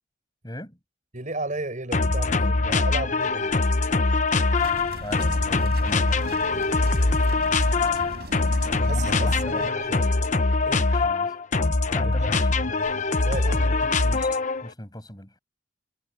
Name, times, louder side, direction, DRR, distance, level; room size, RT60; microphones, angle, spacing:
voice 1, 0.4-0.8 4.9-6.4 7.4-8.2 8.9-10.0 10.8-11.4 11.9-12.9 13.5-15.4, left 1 dB, 20° left, 7.8 m, -40 dB
voice 2, 1.1-3.5 8.7-10.1 10.6-10.8 12.0-12.1 13.2-13.8, right 2 dB, 45° right, 7.3 m, -34 dB
sound 1, 1.9-14.7, left 3 dB, 45° left, 0.9 m, -23 dB
sound 2, 4.6-9.7, right 1 dB, 65° right, 4.2 m, -38 dB
head